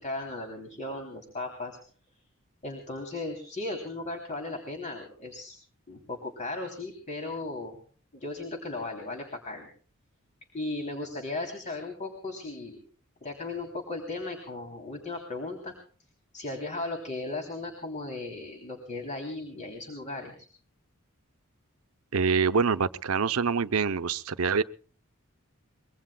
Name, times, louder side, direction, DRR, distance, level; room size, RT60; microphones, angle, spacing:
voice 1, 0.0-1.8 2.6-5.5 5.9-7.8 8.1-9.7 10.5-12.8 13.2-15.7 16.3-20.3, left 2 dB, 35° left, 3 dB, 3.2 m, -36 dB
voice 2, 22.1-24.6, right 5 dB, 85° right, 12 dB, 0.7 m, -25 dB
25.0 x 22.5 x 2.3 m, 0.42 s
head